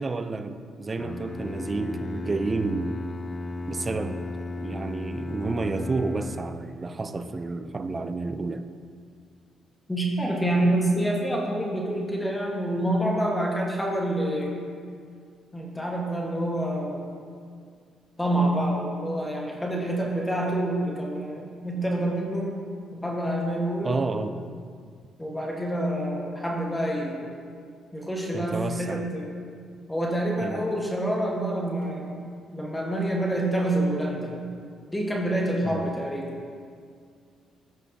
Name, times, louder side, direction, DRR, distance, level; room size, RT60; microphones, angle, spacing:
voice 1, 0.0-3.0 3.7-4.2 4.6-8.6 23.8-24.3 28.3-29.0 30.4-30.6 35.6-35.9, right 3 dB, 30° right, 10 dB, 0.4 m, -30 dB
Bowed string instrument, 1.0-6.8, left 2 dB, 30° left, 0.4 m, -35 dB
voice 2, 9.9-14.5 15.5-17.0 18.2-22.6 22.9-23.9 25.2-27.3 27.9-29.3 29.9-34.4 34.9-36.3, right 1 dB, 10° left, -2 dB, 1.4 m, -27 dB
13.5 x 5.1 x 2.8 m, 2.2 s
cardioid pair, 90°, 0 cm